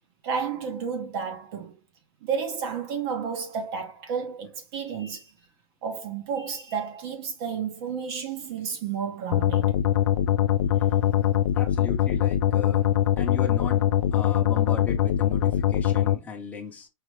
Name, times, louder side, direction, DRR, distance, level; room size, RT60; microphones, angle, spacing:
voice 1, 0.2-1.8 2.2-5.3 5.8-9.7, right 6 dB, 45° right, 1.0 m, -31 dB
sound 1, 9.3-16.2, left 11 dB, 65° left, 0.5 m, -22 dB
voice 2, 11.5-12.9 13.2-16.9, left 6 dB, 10° left, 0.9 m, -37 dB
4.8 x 2.5 x 3.2 m
hypercardioid pair, 150°, 17 cm